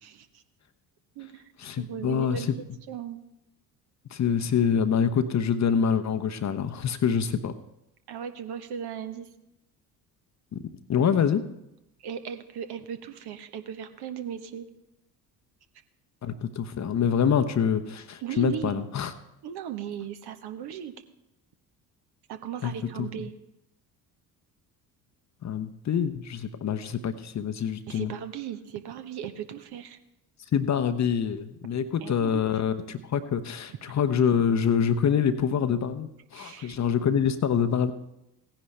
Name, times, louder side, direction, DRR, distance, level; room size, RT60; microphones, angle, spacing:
voice 1, 0.0-0.4 1.2-1.4 1.8-3.2 8.1-9.3 12.0-14.7 18.2-18.8 19.4-20.9 22.3-23.3 27.9-30.0 32.0-32.4 36.3-36.8, right 8 dB, 50° right, 8 dB, 1.1 m, -37 dB
voice 2, 1.6-2.5 4.1-7.5 10.5-10.6 10.9-11.4 16.2-19.1 22.6-22.7 23.0-23.1 25.4-28.1 30.5-37.9, left 7 dB, 35° left, 9 dB, 0.9 m, -25 dB
16.5 x 10.0 x 3.3 m, 0.88 s
figure-of-eight pair, 55°, 50 cm